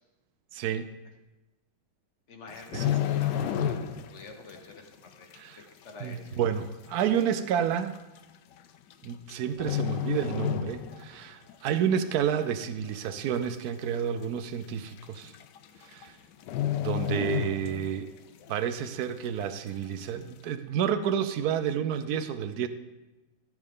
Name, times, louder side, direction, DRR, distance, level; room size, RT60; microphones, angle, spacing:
voice 1, 0.5-0.9 2.7-2.9 5.3-5.6 6.0-8.0 9.0-15.3 15.8-16.1 16.8-18.1 18.5-22.7, right 8 dB, 75° right, 10 dB, 0.8 m, -30 dB
voice 2, 2.3-5.3 5.7-6.3, left 3 dB, 45° left, 4 dB, 1.1 m, -46 dB
sound 1, 2.5-4.2 4.5-4.8 5.3-5.4 6.3-6.4 6.6-6.7 7.6-7.8 8.9-9.3 9.6-11.2 11.5-11.7 12.2-12.7 13.1-13.2 13.4-13.5 13.9-14.0 15.0-15.1 15.3-15.6 15.9-16.0 16.4-18.1 18.4-18.5, left 10 dB, 70° left, 1.1 m, -30 dB
14.5 x 7.8 x 3.7 m, 1.1 s
omnidirectional pair, 2.3 m